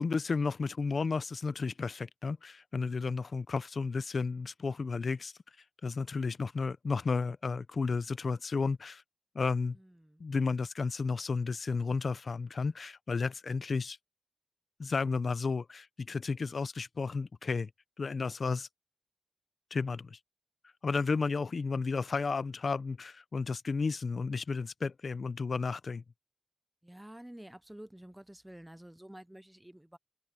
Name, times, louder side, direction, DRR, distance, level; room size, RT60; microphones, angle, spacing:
voice 1, 0.0-5.3 5.8-9.0 9.3-9.8 10.2-14.0 14.8-17.7 18.0-18.7 19.7-20.2 20.8-26.0, left 4 dB, 65° left, 0.6 m, -32 dB
voice 2, 9.7-10.2 21.0-21.3 26.8-30.0, right 1 dB, 10° right, 0.6 m, -50 dB
wide cardioid pair, 120°, 0 cm